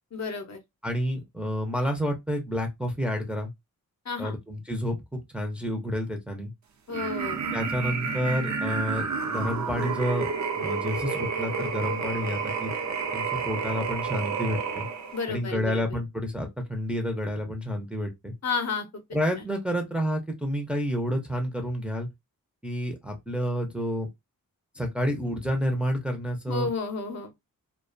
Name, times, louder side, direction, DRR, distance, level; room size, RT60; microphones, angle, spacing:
voice 1, 0.1-0.6 4.1-4.4 6.9-7.5 15.1-16.0 18.4-18.9 26.5-27.3, left 4 dB, 50° left, 0.6 m, -31 dB
voice 2, 0.8-3.5 4.2-6.5 7.5-10.3 10.6-12.7 13.1-14.9 15.3-18.3 19.1-22.1 22.6-24.1 24.7-26.7, equal, 5° right, 0.5 m, -29 dB
sound 1, 6.9-15.3, right 5 dB, 55° right, 0.6 m, -30 dB
2.3 x 2.2 x 2.4 m
wide cardioid pair, 95°, 35 cm